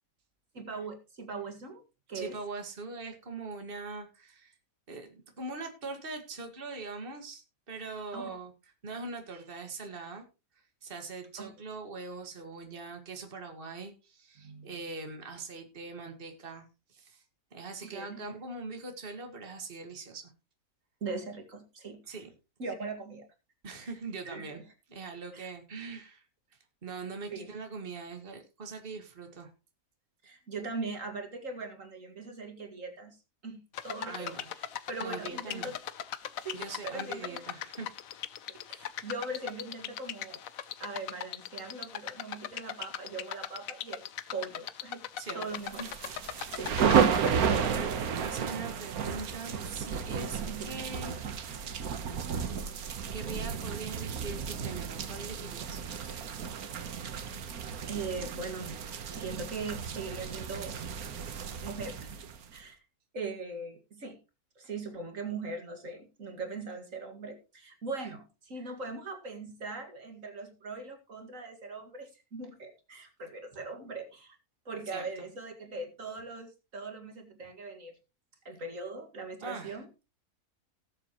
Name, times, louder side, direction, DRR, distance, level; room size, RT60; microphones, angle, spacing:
voice 1, 0.5-1.8 2.1-2.4 8.1-8.3 11.4-11.5 14.4-14.7 17.8-18.2 21.0-22.0 22.6-23.3 23.8-23.9 24.3-24.5 25.3-25.5 27.3-27.5 30.2-33.2 33.4-35.8 36.4-37.4 38.5-40.4 40.8-44.1 44.3-45.0 45.3-45.9 46.5-47.9 50.5-50.9 57.9-58.8 59.1-60.8 61.6-62.0 62.5-62.8 63.1-64.2 64.6-74.4 74.7-77.9 78.5-79.9, right 3 dB, 65° right, 5 dB, 2.3 m, -40 dB
voice 2, 2.1-4.6 4.9-8.5 8.8-10.2 10.5-17.2 17.5-20.3 22.0-22.3 23.6-24.6 24.9-26.2 26.5-29.5 34.0-34.5 34.8-35.7 36.5-38.0 45.1-45.9 46.4-46.6 47.5-51.8 53.1-55.8 68.0-68.1 74.9-75.3 79.4-80.0, right 3 dB, 40° right, 4 dB, 2.0 m, -42 dB
sound 1, 33.7-47.4, left 10 dB, 70° left, 1.1 m, -40 dB
sound 2, 45.6-62.6, right 7 dB, 85° right, 1.6 m, -32 dB
18.5 x 7.5 x 3.0 m, 0.28 s
omnidirectional pair, 1.5 m